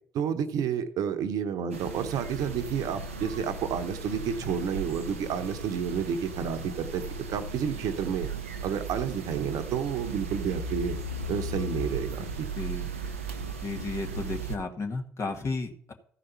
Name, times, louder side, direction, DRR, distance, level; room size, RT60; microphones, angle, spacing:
voice 1, 0.1-7.0 7.3-8.3 8.6-11.0 11.3-12.5, right 7 dB, 65° right, 9 dB, 0.9 m, -30 dB
sound 1, 1.7-14.6, right 3 dB, 90° right, 0.6 m, -36 dB
voice 2, 12.6-12.9 13.6-15.9, left 3 dB, 45° left, 4 dB, 1.7 m, -33 dB
14.0 x 5.1 x 5.7 m, 0.62 s
hypercardioid pair, 45°, 7 cm